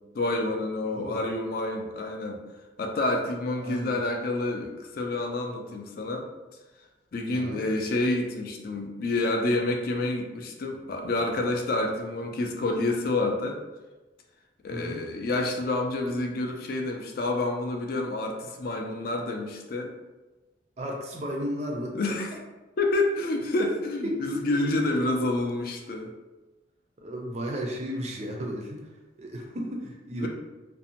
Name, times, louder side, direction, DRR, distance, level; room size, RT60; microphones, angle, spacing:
voice 1, 0.1-2.4 2.8-6.3 7.1-13.6 14.6-19.9 21.9-22.3 22.8-26.1 30.2-30.3, left 2 dB, 50° left, 2 dB, 0.3 m, -28 dB
voice 2, 0.8-1.2 3.6-3.9 7.3-7.6 14.7-15.0 20.8-21.9 24.0-24.7 27.0-28.8 29.2-30.3, equal, 35° right, 0 dB, 0.4 m, -34 dB
2.6 x 2.0 x 2.8 m, 1.2 s
head